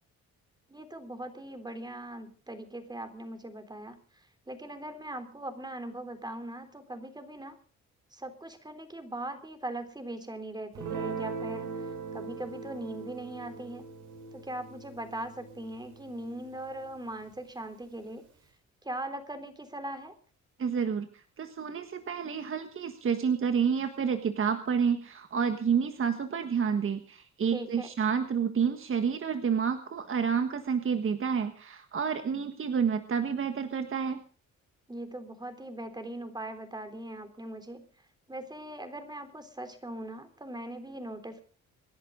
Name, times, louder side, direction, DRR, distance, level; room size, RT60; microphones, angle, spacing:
voice 1, 0.7-4.0 4.5-7.6 8.1-11.7 12.1-13.9 14.3-18.2 18.8-20.1 27.5-27.9 34.9-37.9 38.3-41.4, right 1 dB, 15° right, 8 dB, 3.6 m, -40 dB
Guitar, 10.7-17.3, right 5 dB, 80° right, 4.6 m, -41 dB
voice 2, 20.6-34.2, right 6 dB, 45° right, 8 dB, 1.5 m, -29 dB
26.5 x 11.0 x 3.9 m, 0.42 s
cardioid pair, 90°, 30 cm